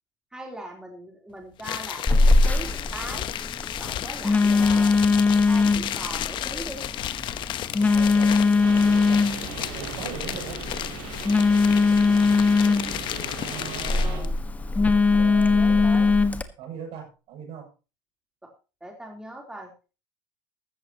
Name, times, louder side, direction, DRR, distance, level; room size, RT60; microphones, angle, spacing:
voice 1, 0.3-2.7 2.9-3.3 3.8-5.0 5.5-6.8 13.5-13.6 13.9-14.3 15.6-16.1 18.4-18.5 18.8-19.7, right 1 dB, 5° right, 1 dB, 3.5 m, -40 dB
sound 1, 1.6-14.3, left 12 dB, 50° left, 1.0 m, -34 dB
Telephone, 2.1-16.4, left 4 dB, 15° left, 1.4 m, -21 dB
voice 2, 7.8-9.2 9.7-10.6 11.5-11.7 13.4-14.3 14.9-15.9 16.6-17.7, right 7 dB, 60° right, 3 dB, 7.0 m, -40 dB
sound 2, 8.6-14.2, right 5 dB, 80° right, 5.8 m, -39 dB
14.0 x 13.5 x 2.9 m, 0.32 s
supercardioid pair, 105°, 11 cm